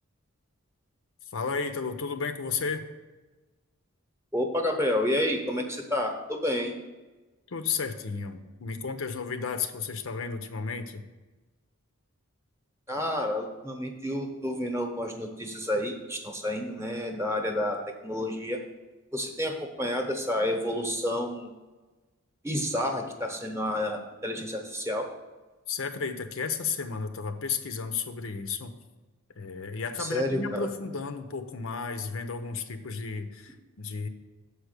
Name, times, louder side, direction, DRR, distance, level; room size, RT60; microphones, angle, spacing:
voice 1, 1.3-2.8 7.5-11.0 25.7-28.8 29.4-34.1, left 5 dB, 65° left, 8 dB, 0.6 m, -33 dB
voice 2, 4.3-6.7 12.9-18.6 19.1-21.5 22.4-25.1 30.0-30.7, left 1 dB, 10° right, 3 dB, 0.9 m, -30 dB
7.1 x 4.8 x 6.6 m, 1.2 s
head